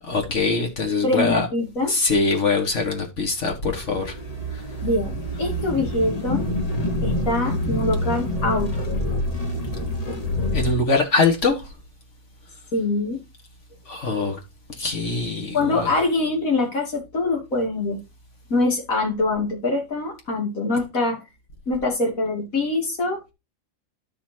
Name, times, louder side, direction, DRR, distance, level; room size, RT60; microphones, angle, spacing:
voice 1, 0.1-1.5 1.9-4.2 4.5-4.6 10.5-11.7 13.9-14.4 14.8-16.0, left 3 dB, 60° left, 2.1 m, -23 dB
voice 2, 1.0-2.0 4.8-6.5 7.0-9.0 12.7-13.2 15.5-18.0 18.5-21.2 21.7-23.2, left 2 dB, 90° left, 3.1 m, -24 dB
sound 1, 3.7-10.7, left 1 dB, 30° left, 1.7 m, -27 dB
12.5 x 5.7 x 2.8 m
omnidirectional pair, 1.4 m